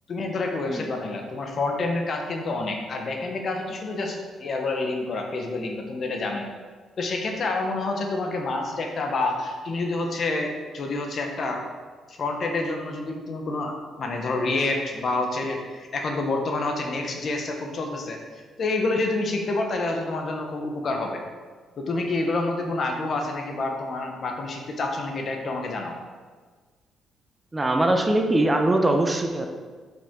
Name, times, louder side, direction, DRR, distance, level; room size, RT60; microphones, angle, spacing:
voice 1, 0.1-6.5 7.0-11.6 12.1-21.2 21.8-26.0, left 2 dB, 50° left, 2 dB, 1.2 m, -28 dB
voice 2, 27.5-29.5, right 1 dB, 20° right, 3 dB, 0.8 m, -22 dB
7.1 x 5.9 x 3.9 m, 1.5 s
cardioid pair, 90°, 0 cm